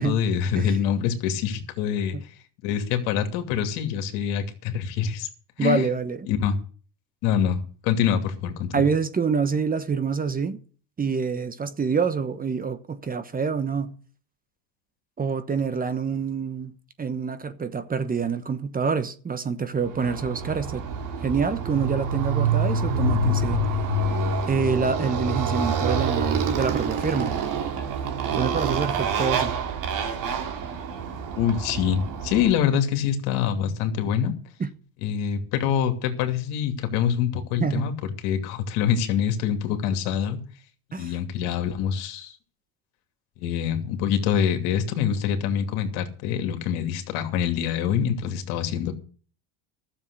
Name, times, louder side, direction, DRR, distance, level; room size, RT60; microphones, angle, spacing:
voice 1, 0.0-2.2 2.6-5.3 5.6-5.8 6.3-6.6 7.2-8.7 31.4-34.3 35.0-37.9 38.2-40.4 40.9-42.3 43.4-48.9, left 8 dB, 70° left, 2.6 m, -25 dB
voice 2, 5.6-6.3 8.7-10.6 11.0-14.0 15.2-16.7 17.0-20.8 21.2-23.6 24.5-27.3 28.3-29.5 34.6-34.7 37.6-37.9 40.9-41.1, right 5 dB, 20° right, 1.1 m, -26 dB
Motorcycle, 19.9-32.6, right 3 dB, 50° right, 2.7 m, -26 dB
12.5 x 7.3 x 8.4 m
supercardioid pair, 105°, 40 cm